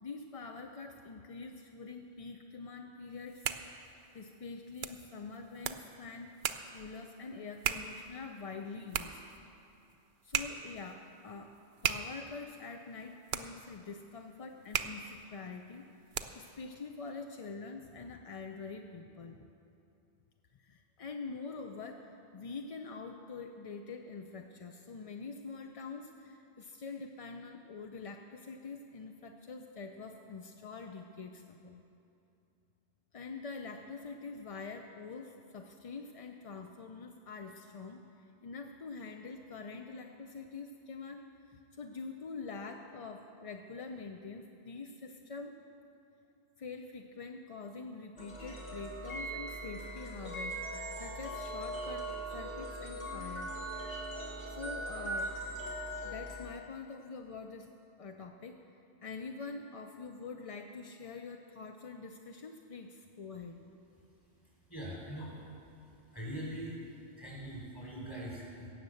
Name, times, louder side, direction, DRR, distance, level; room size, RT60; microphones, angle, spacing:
voice 1, 0.0-3.5 4.1-6.3 6.7-9.2 10.2-11.6 11.8-19.5 20.5-31.8 33.1-45.6 46.6-50.6 51.0-53.6 54.5-55.3 56.0-57.7 58.0-58.7 59.0-63.6, left 4 dB, 45° left, 4 dB, 0.5 m, -45 dB
sound 1, 3.1-16.6, right 8 dB, 65° right, 0.8 m, -40 dB
sound 2, 48.2-56.4, right 1 dB, 80° left, 3.0 m, -40 dB
voice 2, 64.7-65.4 65.8-66.8 67.2-68.7, right 1 dB, 20° left, -4 dB, 3.8 m, -42 dB
17.0 x 6.6 x 7.7 m, 2.7 s
omnidirectional pair, 1.1 m